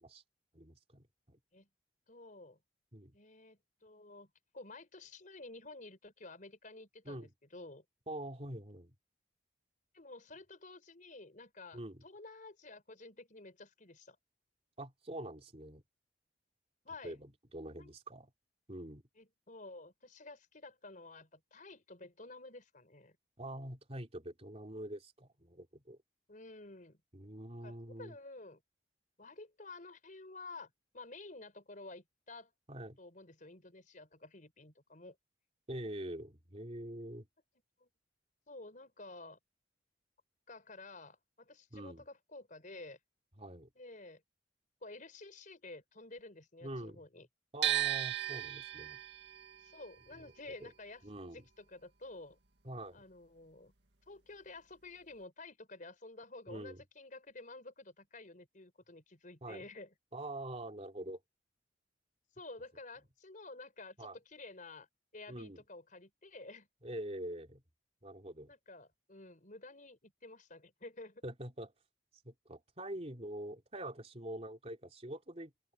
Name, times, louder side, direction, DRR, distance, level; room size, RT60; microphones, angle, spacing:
voice 1, 0.5-1.4 2.9-3.2 7.1-7.3 8.1-8.9 11.7-12.0 14.8-15.8 17.0-18.3 18.7-19.0 23.4-26.0 27.1-28.2 32.7-33.0 35.7-37.3 41.7-42.0 43.4-43.7 46.6-47.0 47.5-49.0 50.6-50.7 51.0-51.4 52.6-53.0 56.5-56.8 59.4-59.6 60.1-61.2 64.0-64.2 65.3-65.6 66.8-67.6 68.0-68.5 71.2-71.7 72.2-75.5, right 1 dB, 35° right, 3.7 m, -45 dB
voice 2, 2.1-2.6 3.1-7.8 9.9-14.2 16.8-17.2 17.8-17.9 19.1-23.2 26.3-27.0 27.6-28.6 29.2-32.5 33.0-35.2 37.8-37.9 38.5-39.4 40.5-43.0 43.7-44.2 44.8-47.3 49.6-52.4 52.9-53.7 54.1-59.9 62.3-64.9 65.1-66.7 68.5-71.2, left 2 dB, 45° left, 4.8 m, -51 dB
sound 1, 47.6-53.7 53.9-55.2, right 13 dB, 70° right, 2.1 m, -38 dB
open air
head